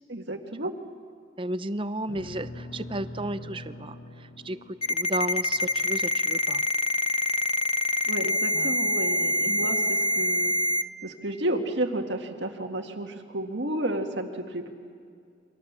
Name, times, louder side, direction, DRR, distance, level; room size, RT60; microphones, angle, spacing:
voice 1, 0.1-0.7 8.1-10.5 11.0-14.7, right 1 dB, 60° right, 4 dB, 1.9 m, -31 dB
voice 2, 1.4-4.6 4.9-6.6 8.5-8.7 9.4-9.6, right 1 dB, 25° right, 13 dB, 0.7 m, -33 dB
sound 1, 2.1-6.5, left 1 dB, 60° left, 2.0 m, -43 dB
Ringtone, 4.8-10.8, left 1 dB, 30° left, 0.7 m, -25 dB
29.0 x 24.0 x 7.4 m, 2.3 s
head